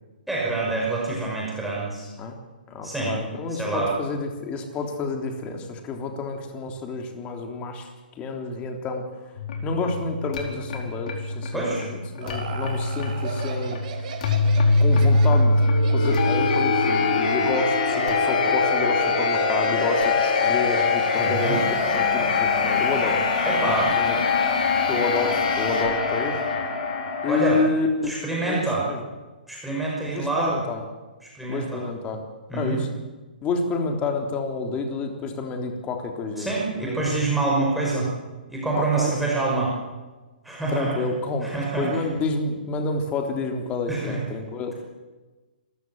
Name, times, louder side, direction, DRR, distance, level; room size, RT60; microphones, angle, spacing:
voice 1, 0.3-2.1 2.8-3.2 3.5-3.9 11.5-11.8 21.2-21.6 23.5-23.9 27.3-27.6 28.0-28.8 29.5-30.6 31.2-31.8 32.5-32.8 36.4-38.1 38.5-39.7 40.4-40.9 41.4-42.0 43.9-44.2, right 3 dB, ahead, -5 dB, 5.8 m, -26 dB
voice 2, 2.7-7.9 8.2-9.1 9.6-13.8 14.8-15.6 15.9-24.2 24.8-26.4 27.2-28.1 28.5-29.0 30.1-30.8 31.5-32.2 32.5-32.9 33.4-37.2 38.7-39.1 40.7-44.7, left 3 dB, 25° left, 4 dB, 3.5 m, -29 dB
sound 1, 9.4-27.4, left 3 dB, 55° left, 4.6 m, -23 dB
Laughter, 11.8-16.9, right 5 dB, 50° right, 4.9 m, -38 dB
26.5 x 15.5 x 7.9 m, 1.2 s
hypercardioid pair, 130°, 5 cm